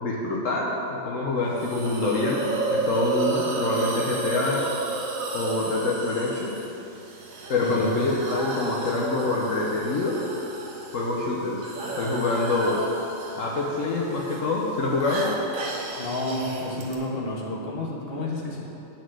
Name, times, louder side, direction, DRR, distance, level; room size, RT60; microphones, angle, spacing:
voice 1, 0.0-4.6 5.3-6.5 7.5-10.1 10.9-11.6 12.0-12.8 13.4-15.3, left 2 dB, 75° left, -3 dB, 1.3 m, -26 dB
Hiss, 1.6-16.9, right 3 dB, 85° right, 1.5 m, -33 dB
voice 2, 7.6-8.0 16.0-18.6, left 1 dB, 45° left, -4 dB, 1.6 m, -30 dB
10.5 x 4.1 x 7.7 m, 2.9 s
omnidirectional pair, 1.4 m